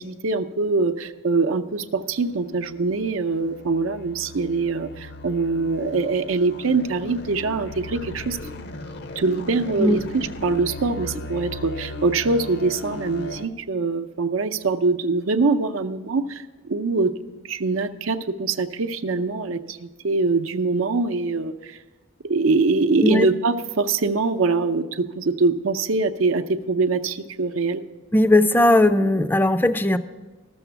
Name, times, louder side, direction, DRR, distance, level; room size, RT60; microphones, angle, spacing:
voice 1, 0.0-8.4 9.2-17.1 17.4-21.8 22.3-27.8, right 3 dB, 85° right, 8 dB, 0.6 m, -23 dB
sound 1, 2.1-13.5, left 2 dB, 55° left, 0.6 m, -37 dB
voice 2, 28.1-30.0, left 1 dB, 10° left, 12 dB, 0.4 m, -17 dB
13.0 x 7.0 x 6.9 m, 1.2 s
head